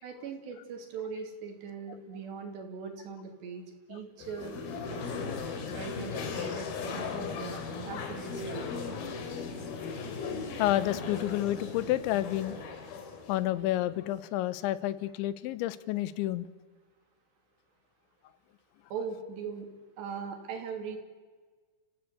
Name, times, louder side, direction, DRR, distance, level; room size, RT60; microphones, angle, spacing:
voice 1, 0.0-3.6 3.9-4.6 4.9-5.4 5.7-8.6 18.9-19.7 20.0-21.0, right 6 dB, 70° right, 5 dB, 4.7 m, -40 dB
sound 1, 4.2-14.2, left 5 dB, 60° left, 3.9 m, -37 dB
voice 2, 10.6-12.5 13.3-16.5, left 14 dB, 90° left, 16 dB, 3.2 m, -30 dB
30.0 x 16.0 x 8.3 m, 1.4 s
omnidirectional pair, 5.2 m